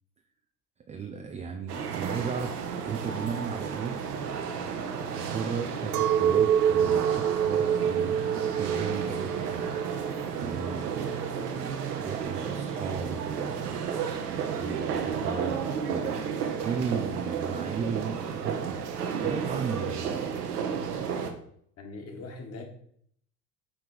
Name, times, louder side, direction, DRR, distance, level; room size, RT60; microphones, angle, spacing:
voice 1, 0.9-4.0 5.2-9.6 10.4-13.8 14.6-16.2 16.6-18.8 19.1-20.2, right 6 dB, 15° right, 4 dB, 0.4 m, -36 dB
sound 1, 1.7-21.3, right 6 dB, 70° right, 1.1 m, -32 dB
Chink clink, 5.9-11.4, right 9 dB, 45° right, 0.7 m, -27 dB
voice 2, 21.8-22.6, left 3 dB, 30° left, 3 dB, 1.7 m, -41 dB
8.0 x 3.7 x 4.6 m, 0.65 s
figure-of-eight pair, 70°, 48 cm